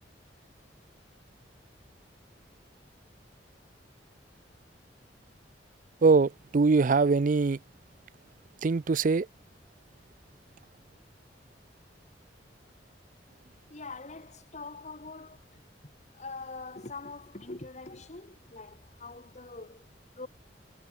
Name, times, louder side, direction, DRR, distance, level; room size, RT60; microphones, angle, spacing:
voice 1, 6.0-7.6 8.6-9.3, right 4 dB, 45° right, 0.5 m, -22 dB
voice 2, 13.7-15.6 16.1-19.9 20.2-20.3, left 3 dB, 40° left, 1.8 m, -43 dB
head